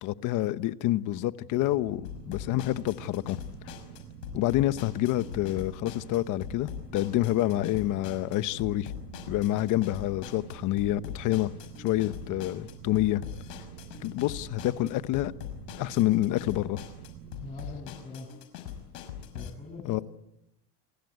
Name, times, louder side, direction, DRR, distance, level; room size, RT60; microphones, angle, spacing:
voice 1, 0.0-3.4 4.3-8.9 9.3-11.5 11.8-13.2 14.0-15.3 15.8-16.8 19.9-20.0, left 15 dB, 40° left, 14 dB, 1.1 m, -27 dB
sound 1, 1.5-17.5, right 9 dB, 90° right, 4.4 m, -47 dB
sound 2, 2.0-19.5, left 9 dB, 85° left, 5.7 m, -42 dB
voice 2, 17.2-18.4 19.3-20.0, left 2 dB, 15° left, 5 dB, 7.5 m, -43 dB
29.0 x 21.0 x 9.4 m, 0.90 s
supercardioid pair, 150°, 47 cm